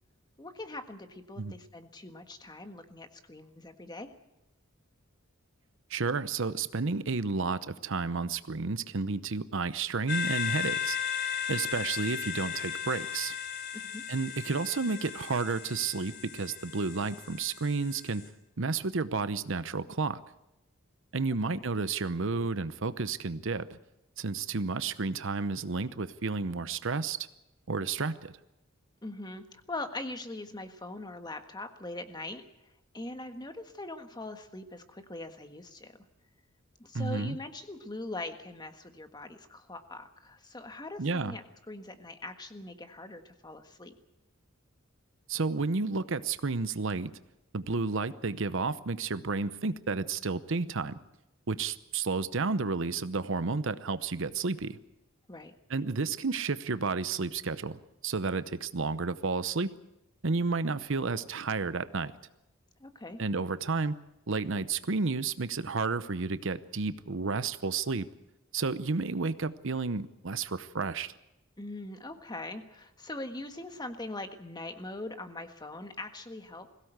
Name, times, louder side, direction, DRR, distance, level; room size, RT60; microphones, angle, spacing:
voice 1, 0.4-4.1 13.7-14.0 21.5-21.6 29.0-32.4 32.9-35.9 36.8-43.9 55.3-55.5 62.8-63.2 71.6-76.8, left 2 dB, 20° left, 7 dB, 1.5 m, -42 dB
voice 2, 5.9-11.0 11.5-13.3 14.1-18.2 18.6-20.2 21.1-23.8 24.2-27.2 27.7-28.3 36.9-37.4 41.0-41.3 45.3-47.1 47.5-51.0 51.5-54.8 55.7-59.7 60.2-62.1 63.2-64.0 64.3-68.1 68.5-71.1, right 4 dB, 65° right, 13 dB, 0.8 m, -31 dB
sound 1, 10.1-18.3, left 8 dB, 55° left, 3.4 m, -36 dB
21.5 x 16.5 x 8.1 m, 0.91 s
head